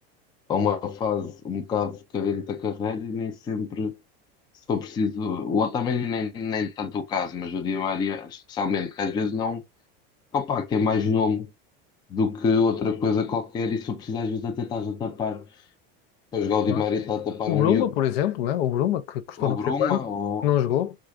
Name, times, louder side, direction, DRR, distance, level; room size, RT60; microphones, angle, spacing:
voice 1, 0.5-4.0 4.7-9.6 10.3-11.5 12.1-15.4 16.3-17.8 19.4-20.4, left 5 dB, 15° left, 0.4 m, -26 dB
voice 2, 17.5-20.0 20.4-21.0, left 11 dB, 75° left, 0.7 m, -24 dB
4.5 x 2.4 x 2.4 m
supercardioid pair, 160°, 30 cm